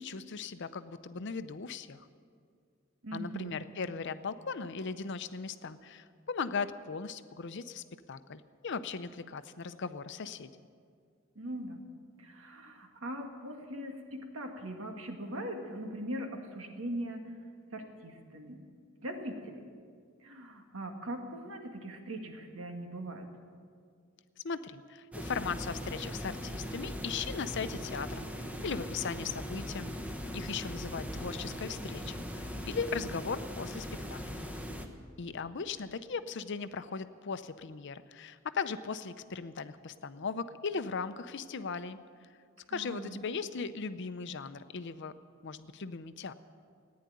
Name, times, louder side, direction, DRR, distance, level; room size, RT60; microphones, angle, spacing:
voice 1, 0.0-2.1 3.1-10.5 24.4-29.9 30.3-34.4 35.2-42.0 42.7-45.1 45.4-46.3, left 5 dB, 60° left, 12 dB, 0.6 m, -38 dB
voice 2, 3.0-3.5 11.4-11.8 12.2-17.3 17.7-18.6 19.0-19.6 20.2-23.3 42.7-43.2, right 1 dB, 85° right, 4 dB, 1.8 m, -40 dB
sound 1, 25.1-34.9, equal, 5° right, 1.0 m, -40 dB
15.0 x 9.7 x 9.3 m, 2.2 s
head